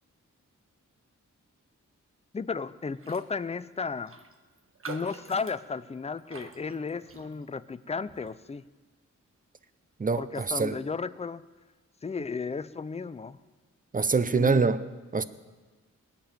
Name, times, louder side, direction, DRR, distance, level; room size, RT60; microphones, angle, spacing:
voice 1, 2.3-4.1 4.9-8.6 10.1-11.4 12.0-13.4 14.3-14.6, left 4 dB, 20° left, 15 dB, 0.5 m, -34 dB
Raindrop, 3.0-3.3 3.6-3.7 4.1-7.6 8.1-8.3, right 4 dB, 45° right, 1.3 m, -46 dB
voice 2, 10.0-10.8 13.9-14.8 15.1-15.2, right 4 dB, 25° right, 13 dB, 0.7 m, -25 dB
20.5 x 6.9 x 9.1 m, 1.3 s
wide cardioid pair, 100°, 31 cm